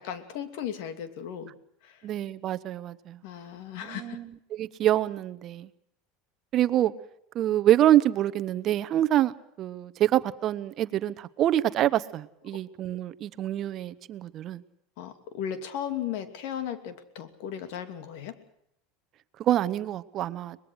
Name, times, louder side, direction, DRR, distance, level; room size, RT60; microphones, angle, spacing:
voice 1, 0.0-1.5 1.8-2.0 3.2-4.2 15.0-18.4, left 9 dB, 70° left, 9 dB, 2.8 m, -36 dB
voice 2, 2.0-3.2 3.8-5.7 6.5-6.9 7.3-14.6 19.4-20.6, right 12 dB, 40° right, 15 dB, 0.9 m, -26 dB
23.5 x 20.5 x 6.4 m, 0.74 s
supercardioid pair, 130°, 0 cm